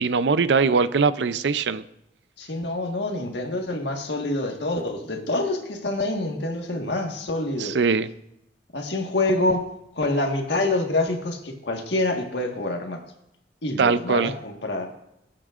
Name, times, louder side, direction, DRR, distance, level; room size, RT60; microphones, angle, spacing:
voice 1, 0.0-1.8 7.6-8.1 13.8-14.3, right 5 dB, 80° right, 14 dB, 0.5 m, -21 dB
voice 2, 2.4-7.8 8.7-9.6 9.9-13.0 13.6-14.9, left 2 dB, 75° left, 3 dB, 1.5 m, -26 dB
18.5 x 8.5 x 2.5 m, 0.82 s
head